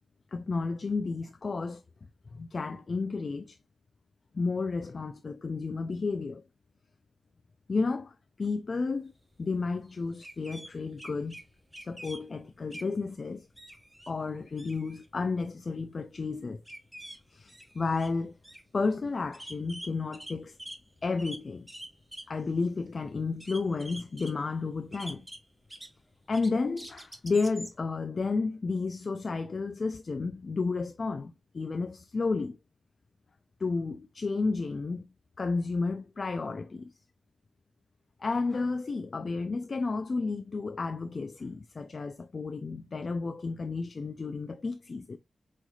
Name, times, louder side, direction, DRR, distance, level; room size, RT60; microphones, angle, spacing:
voice 1, 0.3-1.8 2.3-3.6 4.3-6.4 7.7-9.1 9.4-11.4 11.8-13.5 14.1-16.6 17.3-18.3 18.7-20.6 21.0-21.7 22.3-25.3 26.3-32.6 33.6-35.1 35.4-36.9 38.2-45.2, left 4 dB, 50° left, 0.3 m, -32 dB
sound 1, 9.9-10.0 10.2-11.5 11.7-12.2 12.7-12.9 13.3-14.1 14.4-15.0 16.6-17.2 17.5-18.1 18.4-18.6 19.0-19.1 19.3-20.9 21.2-22.4 22.7-22.8 23.3-24.4 24.9-25.9 26.3-27.8, right 1 dB, 10° right, 0.9 m, -45 dB
5.5 x 3.1 x 2.3 m
wide cardioid pair, 100°, 0 cm